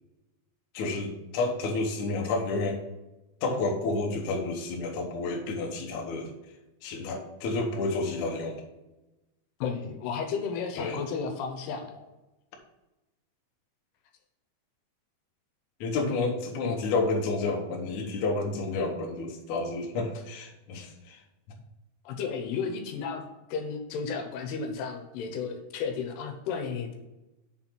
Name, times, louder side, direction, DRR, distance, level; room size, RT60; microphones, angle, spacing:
voice 1, 0.7-2.8 3.4-6.5 6.8-8.6 10.8-11.0 15.8-21.2, left 3 dB, 65° left, 1 dB, 2.1 m, -30 dB
voice 2, 9.6-12.0 22.1-23.2 23.5-26.9, left 5 dB, 80° left, 5 dB, 2.8 m, -33 dB
6.7 x 4.1 x 5.8 m, 1.0 s
omnidirectional pair, 4.6 m